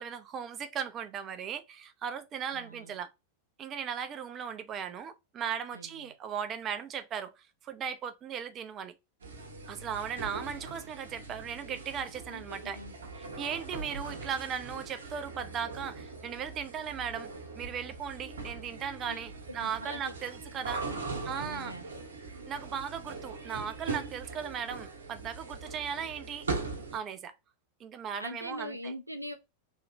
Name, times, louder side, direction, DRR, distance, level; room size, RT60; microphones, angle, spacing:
voice 1, 0.0-3.1 3.6-9.0 9.7-12.8 13.2-17.3 17.6-20.8 21.3-21.7 22.5-26.6 26.9-27.4 27.8-28.9, right 7 dB, 30° right, 0.5 m, -37 dB
voice 2, 2.5-3.0 5.7-6.1 12.3-12.9 14.0-14.4 19.1-19.2 19.6-20.0 20.9-22.0 28.2-29.3, equal, 90° right, 0.5 m, -43 dB
sound 1, 9.2-27.0, right 3 dB, 70° right, 1.1 m, -41 dB
3.2 x 2.8 x 2.5 m
figure-of-eight pair, 90°, 0 cm